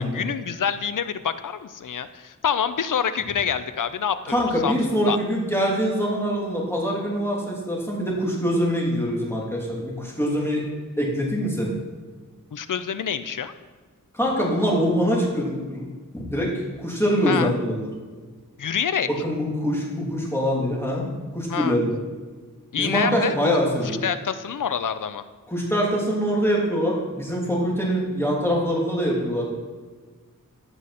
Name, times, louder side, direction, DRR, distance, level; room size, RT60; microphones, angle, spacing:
voice 1, 0.0-4.8 5.1-5.2 12.5-13.5 17.3-17.5 18.6-19.1 21.5-21.8 22.7-25.2, left 7 dB, 70° left, 12 dB, 0.6 m, -27 dB
voice 2, 4.3-10.6 11.0-11.7 14.1-15.8 16.1-17.9 19.1-21.1 21.3-22.0 22.8-24.0 25.5-29.5, equal, 10° left, -4 dB, 3.1 m, -24 dB
15.0 x 6.4 x 4.2 m, 1.4 s
wide cardioid pair, 90°, 32 cm